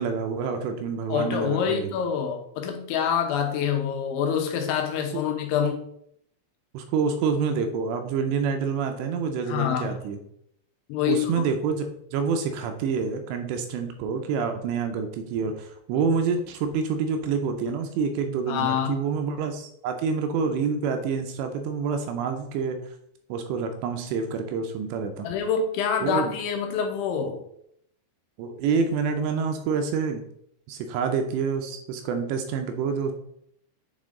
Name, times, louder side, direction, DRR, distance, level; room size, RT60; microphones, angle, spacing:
voice 1, 0.0-1.9 5.1-5.2 6.7-10.2 11.1-11.8 12.1-22.9 23.3-25.3 26.0-26.3 28.4-30.2 30.7-33.1, right 5 dB, 80° right, 5 dB, 2.8 m, -27 dB
voice 2, 1.1-5.8 9.5-9.9 10.9-11.3 18.5-19.0 25.2-27.4, left 7 dB, 80° left, 4 dB, 3.3 m, -26 dB
8.4 x 3.7 x 3.7 m, 0.70 s
omnidirectional pair, 5.3 m